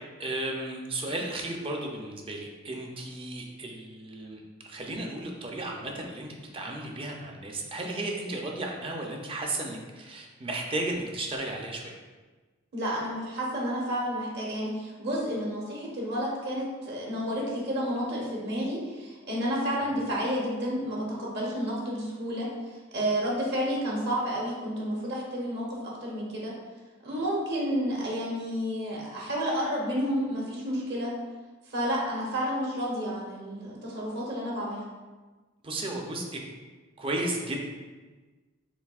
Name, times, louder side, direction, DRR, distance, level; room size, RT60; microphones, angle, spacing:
voice 1, 0.2-4.4 4.7-6.3 6.5-12.0 19.8-19.9 35.6-36.4 37.0-37.6, right 2 dB, 25° right, 0 dB, 0.5 m, -34 dB
voice 2, 12.7-22.5 22.9-25.6 26.0-26.5 27.0-31.1 31.7-34.8, equal, 55° right, -3 dB, 1.2 m, -30 dB
6.9 x 2.7 x 2.4 m, 1.3 s
head